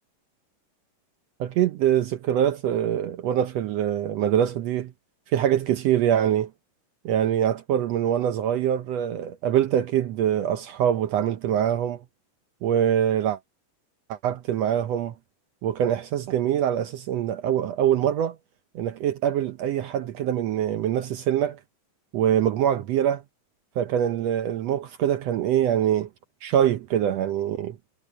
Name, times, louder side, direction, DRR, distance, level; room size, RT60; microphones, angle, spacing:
voice 1, 1.4-4.9 5.3-6.5 7.0-12.0 12.6-13.4 14.1-15.1 15.6-18.4 18.7-21.6 22.1-23.2 23.8-26.1 26.4-27.8, right 10 dB, 80° right, 1.5 m, -24 dB
omnidirectional pair, 3.9 m